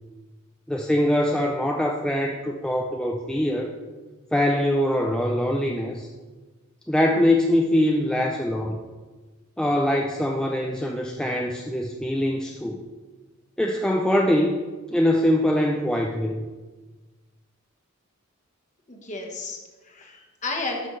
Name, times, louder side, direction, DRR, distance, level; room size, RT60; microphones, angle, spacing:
voice 1, 0.7-3.7 4.3-6.1 6.9-8.8 9.6-12.8 13.6-14.6 14.9-16.4, left 1 dB, 5° left, 1 dB, 0.4 m, -23 dB
voice 2, 18.9-20.9, left 3 dB, 35° left, 1 dB, 1.2 m, -33 dB
12.0 x 5.4 x 3.2 m, 1.3 s
head